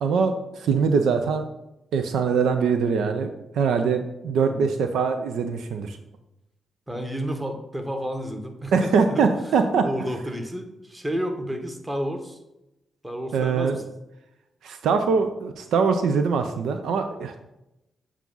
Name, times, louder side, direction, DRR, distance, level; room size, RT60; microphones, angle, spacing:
voice 1, 0.0-1.5 1.9-6.0 8.7-9.8 13.3-13.7 14.6-17.5, right 5 dB, 80° right, 7 dB, 0.4 m, -23 dB
voice 2, 6.9-9.3 9.8-12.4 13.0-13.8, equal, 15° right, 4 dB, 1.3 m, -31 dB
7.3 x 2.4 x 5.3 m, 0.90 s
supercardioid pair, 50°, 0 cm